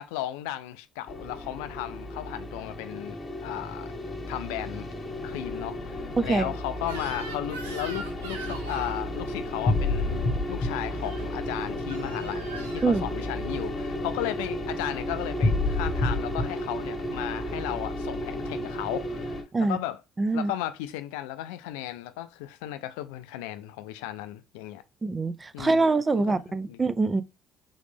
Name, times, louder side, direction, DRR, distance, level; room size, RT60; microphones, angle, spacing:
voice 1, 0.0-3.2 3.4-3.9 4.3-4.9 5.2-20.0 20.3-24.8 25.5-26.8, left 13 dB, 80° left, 0.3 m, -35 dB
sound 1, 1.1-19.4, left 1 dB, 40° left, 1.2 m, -31 dB
voice 2, 6.2-6.5 12.8-13.0 19.5-19.8 20.2-20.5 25.0-27.2, right 3 dB, 30° right, 0.5 m, -24 dB
Crying sobbing / Screech, 6.8-9.0 10.9-11.2 11.9-12.9, right 4 dB, 90° right, 0.6 m, -41 dB
3.8 x 3.2 x 3.3 m
hypercardioid pair, 55°, 0 cm